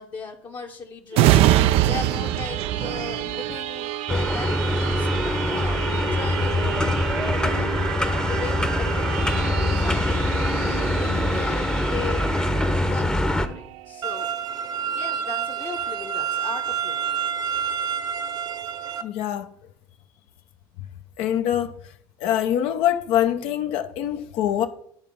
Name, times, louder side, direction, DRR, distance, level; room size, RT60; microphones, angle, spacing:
voice 1, 0.0-6.9 7.4-7.7 8.0-9.3 9.8-10.5 10.9-12.3 12.8-14.3 14.8-17.0, left 5 dB, 45° left, 1.0 m, -37 dB
sound 1, 1.1-14.4 14.9-15.0, right 13 dB, 70° right, 0.4 m, -26 dB
sound 2, 4.1-13.5, left 1 dB, 10° left, 0.8 m, -24 dB
sound 3, 14.0-19.0, right 7 dB, 45° right, 0.9 m, -28 dB
voice 2, 19.0-19.5 21.2-21.7 22.2-24.7, left 11 dB, 75° left, 0.7 m, -24 dB
9.8 x 3.7 x 5.3 m
supercardioid pair, 75°, 10 cm